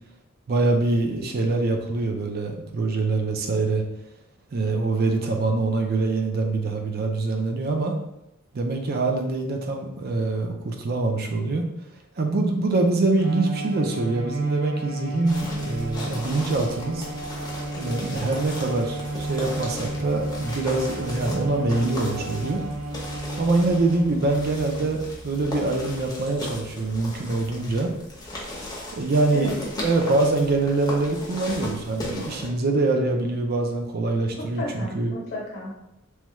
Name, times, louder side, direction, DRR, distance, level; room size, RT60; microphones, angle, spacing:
voice 1, 0.5-3.8 4.5-8.0 8.5-11.7 12.2-17.1 17.8-22.6 23.4-27.9 29.0-29.5 29.8-35.1, right 3 dB, 45° right, 3 dB, 0.4 m, -24 dB
Bowed string instrument, 13.2-24.4, right 1 dB, 90° right, 0.6 m, -33 dB
sound 1, 15.2-32.5, left 1 dB, 20° left, 0.7 m, -37 dB
voice 2, 34.4-35.7, left 1 dB, 50° left, -5 dB, 0.9 m, -33 dB
3.1 x 2.3 x 3.0 m, 0.84 s
head